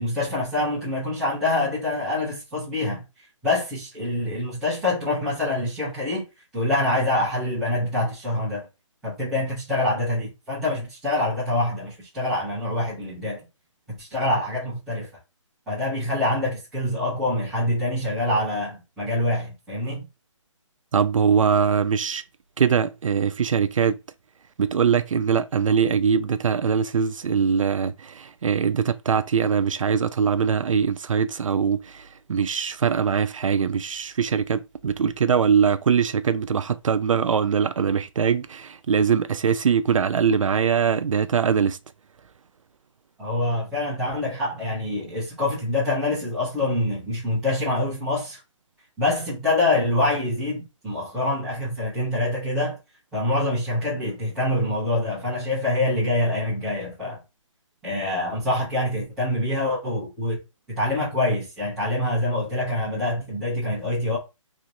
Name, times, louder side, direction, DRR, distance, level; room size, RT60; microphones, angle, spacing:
voice 1, 0.0-3.0 3.4-6.2 6.5-8.7 9.0-13.4 13.9-15.1 15.7-20.0 43.2-48.4 49.0-52.8 53.1-57.2 57.8-60.4 60.7-64.2, left 1 dB, ahead, 0.9 m, -25 dB
voice 2, 20.9-22.2 22.6-24.0 24.6-41.8, right 6 dB, 80° right, 0.4 m, -22 dB
3.1 x 2.9 x 2.6 m
hypercardioid pair, 180°, 17 cm